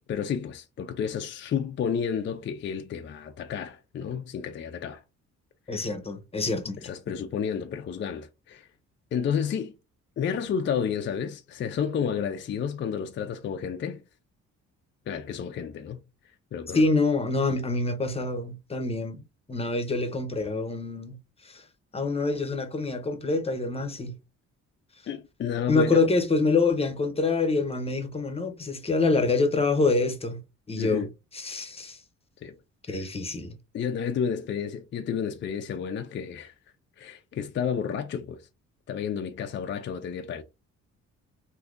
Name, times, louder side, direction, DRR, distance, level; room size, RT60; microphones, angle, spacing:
voice 1, 0.1-5.0 5.7-5.9 6.8-8.7 9.1-9.7 10.2-14.0 15.1-16.0 16.5-16.8 25.1-26.0 30.8-31.1 32.4-32.5 32.9-33.1 33.7-36.5 37.0-38.4 38.9-40.4, left 7 dB, 40° left, 0.4 m, -31 dB
voice 2, 5.7-6.9 16.7-19.2 19.5-21.2 21.4-21.6 21.9-24.1 25.7-30.4 30.7-31.1 31.3-32.0 32.9-33.5, left 3 dB, 20° left, 0.8 m, -26 dB
3.4 x 2.7 x 2.4 m
cardioid pair, 90°, 30 cm